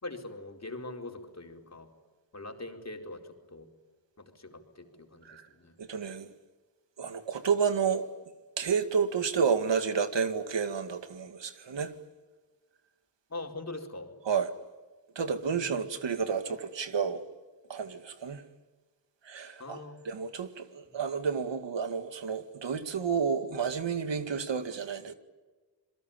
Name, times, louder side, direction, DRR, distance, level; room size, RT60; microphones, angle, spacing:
voice 1, 0.0-1.9 2.3-3.7 4.2-5.8 13.3-14.1 15.4-15.8 19.6-20.0 20.8-20.9, left 2 dB, 35° left, 4.5 m, -42 dB
voice 2, 5.8-6.3 7.0-8.1 8.6-11.9 14.3-14.5 15.2-17.2 17.7-18.4 19.2-19.8 20.1-25.1, right 6 dB, 80° right, 2.2 m, -30 dB
28.0 x 22.5 x 9.1 m
wide cardioid pair, 80°, 43 cm